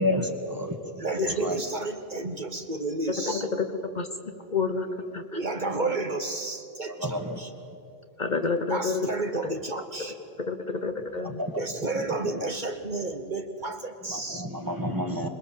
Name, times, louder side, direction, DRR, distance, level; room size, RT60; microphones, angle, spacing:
voice 1, 0.0-0.8 1.4-1.6 7.0-7.4 11.2-11.5 14.1-15.3, left 1 dB, 20° right, 5 dB, 1.9 m, -29 dB
voice 2, 0.9-3.5 5.3-7.5 8.7-10.2 10.5-10.6 11.6-14.5, right 3 dB, 45° right, 6 dB, 1.2 m, -31 dB
voice 3, 3.3-4.1 4.5-4.9 5.1-5.2 8.2-9.1 9.4-9.5 10.5-11.4, left 4 dB, 45° left, 7 dB, 1.1 m, -29 dB
26.0 x 20.5 x 7.4 m, 2.4 s
omnidirectional pair, 1.1 m